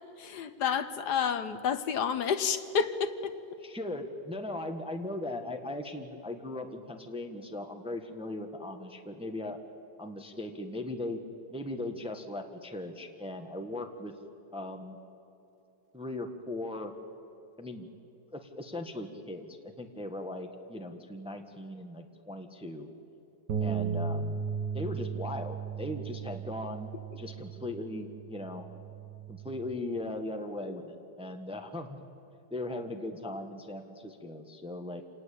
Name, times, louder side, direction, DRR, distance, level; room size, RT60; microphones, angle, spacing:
voice 1, 0.0-3.3, left 7 dB, 60° left, 11 dB, 1.4 m, -30 dB
voice 2, 3.6-9.6 10.0-11.2 11.5-14.1 14.5-15.0 15.9-16.9 17.6-17.9 18.3-22.9 23.6-24.4 24.7-26.9 27.2-28.6 29.3-32.0 32.5-35.0, left 1 dB, 5° right, 5 dB, 1.2 m, -38 dB
sound 1, 23.5-29.7, right 6 dB, 65° right, 1.8 m, -36 dB
27.0 x 19.0 x 8.5 m, 2.9 s
omnidirectional pair, 2.1 m